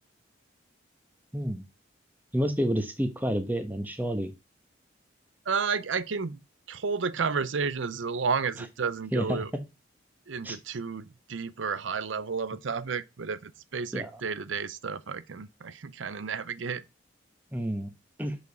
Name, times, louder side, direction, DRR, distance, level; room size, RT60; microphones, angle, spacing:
voice 1, 1.3-1.6 2.3-4.3 9.1-9.4 10.4-10.6 13.9-14.1 17.5-17.9 18.2-18.4, equal, 10° right, 1.0 m, -29 dB
voice 2, 5.5-6.4 6.7-9.5 10.3-16.8, right 5 dB, 80° right, 0.6 m, -32 dB
7.0 x 5.1 x 4.0 m
head